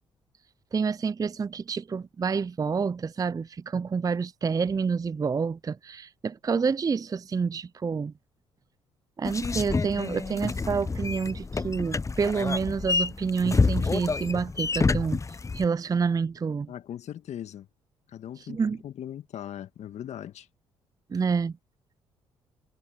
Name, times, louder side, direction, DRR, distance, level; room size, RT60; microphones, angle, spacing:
voice 1, 0.7-8.1 9.2-15.2 15.5-16.7 18.4-18.8 21.1-21.6, right 5 dB, 25° right, 0.5 m, -28 dB
sound 1, 9.2-15.7, left 4 dB, 25° left, 0.8 m, -28 dB
voice 2, 16.7-17.7 18.1-20.5, left 10 dB, 60° left, 1.7 m, -39 dB
hypercardioid pair, 45°, 13 cm